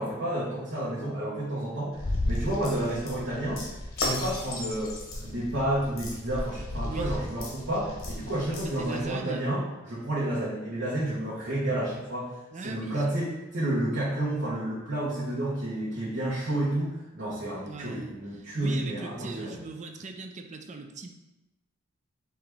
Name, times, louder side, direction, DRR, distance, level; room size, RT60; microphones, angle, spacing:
voice 1, 0.0-3.6 4.0-4.9 5.2-9.6 9.9-12.3 12.6-19.6, right 1 dB, 70° right, -10 dB, 1.4 m, -30 dB
sound 1, 1.9-9.1, left 1 dB, 75° left, 1.0 m, -34 dB
voice 2, 6.8-7.2 8.5-9.5 12.5-13.1 17.6-21.1, right 3 dB, 35° right, 5 dB, 0.4 m, -40 dB
4.8 x 3.0 x 3.5 m, 0.99 s
head